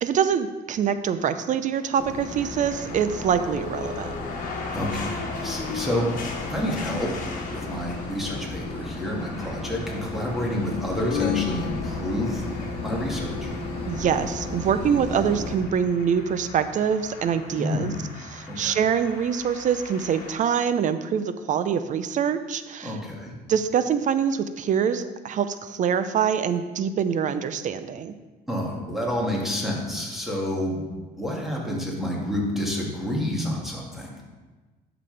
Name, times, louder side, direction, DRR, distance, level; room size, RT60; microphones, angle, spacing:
voice 1, 0.0-4.1 13.9-17.9 18.3-23.0 23.5-28.2, right 7 dB, 50° right, 11 dB, 0.5 m, -25 dB
sound 1, 1.8-20.4, left 4 dB, 55° left, 1.5 m, -39 dB
sound 2, 2.0-15.6, left 2 dB, 30° left, 2.0 m, -34 dB
voice 2, 4.7-7.2 7.5-12.5 12.8-13.5 17.6-17.9 18.5-18.8 22.8-23.4 28.5-30.8 31.2-34.2, left 1 dB, ahead, -3 dB, 2.1 m, -29 dB
sound 3, 11.1-12.8, left 15 dB, 80° left, 0.4 m, -31 dB
11.0 x 6.0 x 3.3 m, 1.3 s
cardioid pair, 110°, 17 cm